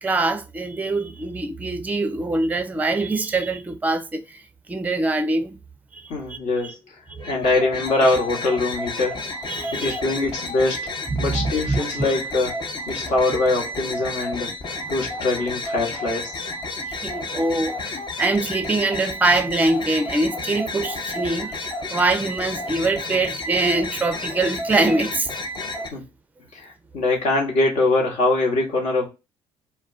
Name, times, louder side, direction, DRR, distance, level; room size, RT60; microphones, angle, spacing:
voice 1, 0.0-4.4 4.7-5.6 5.9-6.7 7.1-7.3 9.5-10.0 11.1-11.8 16.9-25.3, right 2 dB, 10° right, 0.5 m, -24 dB
voice 2, 6.1-7.0 7.3-9.2 9.7-10.9 11.2-12.6 12.9-14.5 14.9-16.4 25.9-26.0 26.5-29.1, left 2 dB, 60° left, 1.2 m, -23 dB
sound 1, 7.2-25.9, left 2 dB, 35° left, 0.7 m, -31 dB
2.3 x 2.2 x 3.6 m
hypercardioid pair, 55°, 13 cm